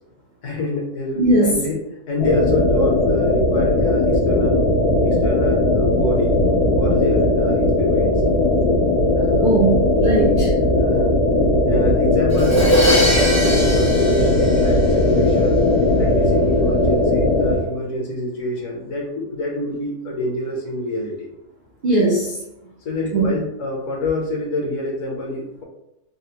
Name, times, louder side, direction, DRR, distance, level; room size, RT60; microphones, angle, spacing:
voice 1, 0.4-1.8 2.1-4.6 5.0-6.4 6.8-8.1 9.2-9.5 10.7-11.1 11.6-15.6 16.0-21.3 22.8-25.6, left 1 dB, 65° left, -2 dB, 1.0 m, -27 dB
voice 2, 1.1-1.7 9.4-10.5 21.8-22.4 23.1-23.3, right 2 dB, 75° right, -4 dB, 0.4 m, -18 dB
sound 1, 2.2-17.6, left 2 dB, 90° left, 1.5 m, -18 dB
Crash cymbal, 12.3-15.3, equal, 25° left, 0.3 m, -21 dB
3.6 x 2.0 x 2.7 m, 0.86 s
omnidirectional pair, 1.6 m